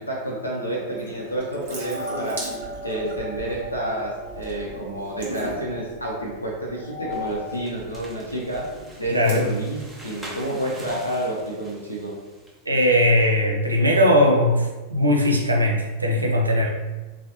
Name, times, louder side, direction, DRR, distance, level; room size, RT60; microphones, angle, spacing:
voice 1, 0.0-2.4 2.8-8.6 9.0-12.1, right 1 dB, 85° left, -3 dB, 0.6 m, -29 dB
sound 1, 0.6-7.5, equal, 45° right, 0.7 m, -37 dB
Water tap faucet / Sink (filling or washing) / Drip, 0.9-10.8, right 2 dB, 60° right, 1.3 m, -40 dB
sound 2, 7.1-12.6, right 1 dB, 10° right, 0.9 m, -44 dB
voice 2, 9.0-9.5 12.7-16.7, left 1 dB, 80° right, 0 dB, 0.6 m, -19 dB
3.8 x 3.1 x 2.8 m, 1.2 s
figure-of-eight pair, 90°, 0 cm